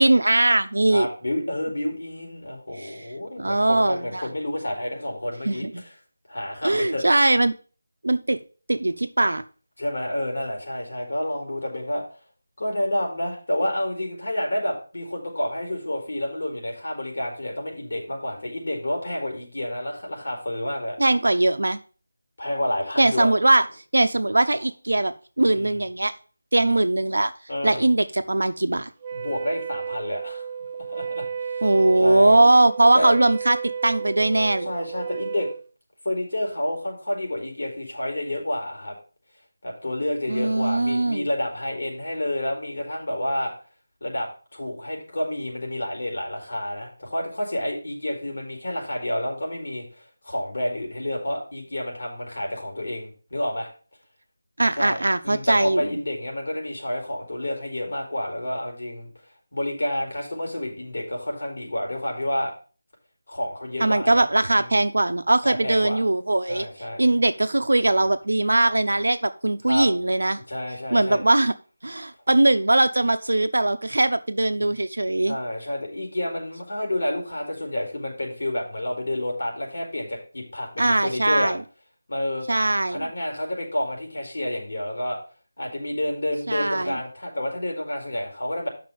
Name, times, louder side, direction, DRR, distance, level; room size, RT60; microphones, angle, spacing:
voice 1, 0.0-1.1 2.8-3.0 3.4-4.3 5.4-5.8 6.6-7.5 8.0-8.4 8.7-9.4 21.0-21.8 23.0-23.6 23.9-26.1 26.5-27.3 27.6-28.9 31.6-34.7 40.3-41.3 54.6-56.0 63.8-66.7 67.0-70.4 70.9-71.5 71.8-75.4 80.8-81.6 82.5-83.1 86.5-87.0, right 2 dB, 85° right, 10 dB, 0.9 m, -20 dB
voice 2, 0.9-5.9 6.3-7.0 9.8-12.0 12.6-21.0 22.4-23.3 25.5-25.8 27.5-27.8 29.1-30.5 30.9-31.2 31.5-31.6 32.0-32.4 32.9-33.1 34.6-35.5 36.0-39.0 39.6-43.5 44.0-53.7 54.7-55.0 55.2-59.1 59.5-62.5 63.3-64.7 65.4-66.0 66.5-67.0 69.7-69.9 70.5-71.2 74.6-74.7 75.3-81.6 82.1-82.5 82.9-85.2 85.6-88.7, left 1 dB, 70° left, 0 dB, 4.1 m, -29 dB
Wind instrument woodwind instrument, 29.0-35.6, right 6 dB, 20° right, 0.5 m, -33 dB
7.7 x 6.0 x 5.2 m, 0.37 s
figure-of-eight pair, 170°, 0 cm